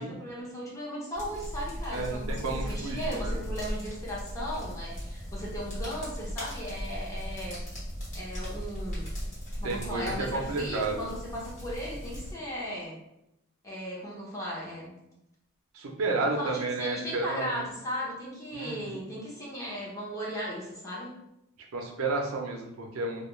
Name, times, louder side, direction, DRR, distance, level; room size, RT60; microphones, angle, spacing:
voice 1, 0.0-7.6 8.1-9.1 9.6-13.0 13.6-15.0 16.2-21.1, equal, 15° left, -5 dB, 0.6 m, -37 dB
sound 1, 1.1-12.3, equal, 35° left, 1.1 m, -37 dB
voice 2, 1.9-3.4 9.6-11.0 15.7-17.6 18.5-19.0 21.7-23.3, right 3 dB, 90° right, 1 dB, 0.5 m, -32 dB
2.3 x 2.2 x 3.0 m, 0.84 s
head